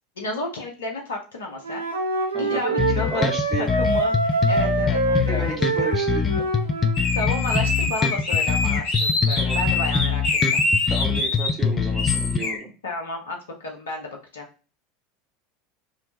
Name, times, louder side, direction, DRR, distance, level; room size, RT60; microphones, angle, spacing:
voice 1, 0.2-1.8 2.2-3.3 3.6-6.1 7.1-10.2 10.5-10.6 12.8-14.5, left 2 dB, 75° left, 1 dB, 0.6 m, -32 dB
Wind instrument woodwind instrument, 1.6-7.0, right 3 dB, 80° right, 0.5 m, -25 dB
voice 2, 2.3-3.7 5.3-6.5 9.4-9.6 10.9-12.7, right 2 dB, 20° right, 1 dB, 1.0 m, -33 dB
sound 1, 2.8-12.4, left 6 dB, 25° left, 0.3 m, -24 dB
sound 2, 6.9-11.5 11.9-12.6, left 3 dB, 50° left, 0.8 m, -25 dB
2.6 x 2.2 x 2.7 m, 0.33 s
figure-of-eight pair, 75°, 0 cm